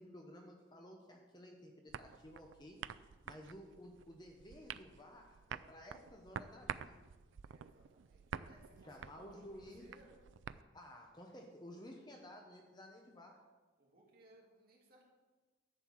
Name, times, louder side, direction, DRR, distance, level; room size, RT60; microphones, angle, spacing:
voice 1, 0.0-2.8 3.2-7.0 8.8-9.8 10.7-13.4, equal, 20° left, 1 dB, 0.9 m, -54 dB
sound 1, 1.9-10.6, right 7 dB, 75° right, 0.3 m, -49 dB
voice 2, 7.4-10.2 13.8-15.0, right 2 dB, 50° right, -3 dB, 2.5 m, -64 dB
11.0 x 4.5 x 7.4 m, 1.3 s
head